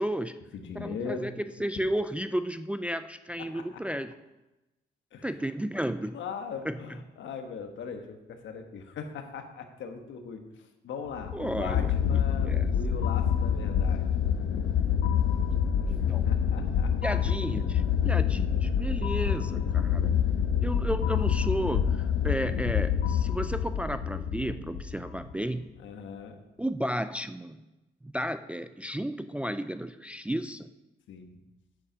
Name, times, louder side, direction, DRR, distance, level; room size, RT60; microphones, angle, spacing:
voice 1, 0.0-0.4 0.7-4.1 5.2-6.2 6.6-6.8 11.3-12.7 15.9-16.3 17.0-20.1 20.6-25.7 26.6-27.6 28.0-30.7, right 1 dB, 5° right, 10 dB, 0.3 m, -33 dB
voice 2, 0.5-1.3 3.5-3.8 5.1-5.4 6.1-14.1 15.8-16.9 25.8-26.4 31.1-31.4, left 6 dB, 70° left, 6 dB, 1.3 m, -40 dB
sound 1, 11.2-25.3, left 8 dB, 85° left, 0.9 m, -27 dB
8.9 x 7.1 x 5.2 m, 1.0 s
cardioid pair, 90°, 20 cm